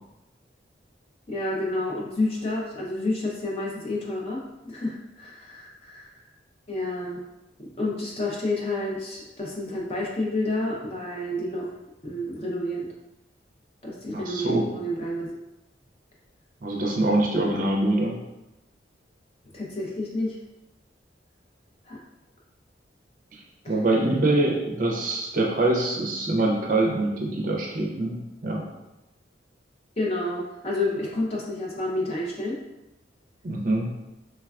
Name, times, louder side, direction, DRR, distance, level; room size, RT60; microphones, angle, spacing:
voice 1, 1.3-6.1 6.7-7.2 7.6-11.7 12.0-12.9 13.8-15.3 17.4-17.7 19.5-20.4 21.9-22.0 23.6-23.7 30.0-32.6, left 2 dB, 35° left, -3 dB, 0.5 m, -29 dB
voice 2, 14.1-14.7 16.6-18.2 23.3-23.4 23.7-28.6 33.4-33.9, right 2 dB, 45° right, -1 dB, 0.4 m, -24 dB
3.3 x 2.2 x 2.3 m, 0.96 s
head